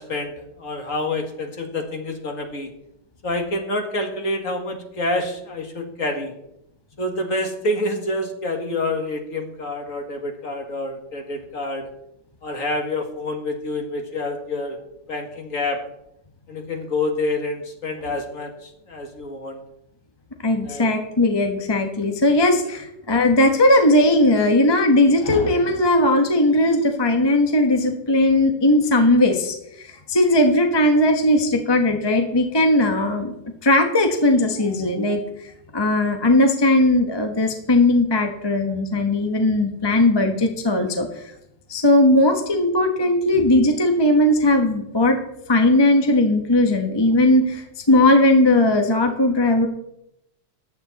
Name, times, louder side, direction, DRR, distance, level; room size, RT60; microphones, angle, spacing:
voice 1, 0.0-2.7 3.2-6.3 7.0-11.9 12.4-14.8 15.1-15.8 16.5-19.6 20.6-20.9, left 2 dB, 40° left, 4 dB, 2.1 m, -27 dB
voice 2, 20.4-33.3 33.6-41.1 41.7-45.2 45.5-49.7, left 1 dB, 20° left, 4 dB, 0.8 m, -18 dB
15.0 x 10.0 x 4.1 m, 0.79 s
omnidirectional pair, 2.4 m